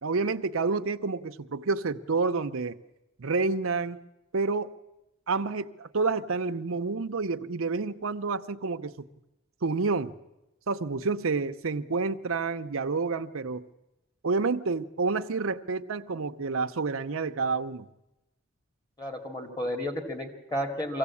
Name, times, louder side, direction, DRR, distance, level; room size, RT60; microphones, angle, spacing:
voice 1, 0.0-2.8 3.2-4.0 4.3-4.7 5.3-9.1 9.6-10.1 10.7-13.7 14.2-17.9, right 4 dB, 75° right, 7 dB, 0.7 m, -29 dB
voice 2, 19.0-21.0, equal, 20° left, 4 dB, 2.3 m, -32 dB
23.0 x 16.0 x 8.5 m, 0.96 s
head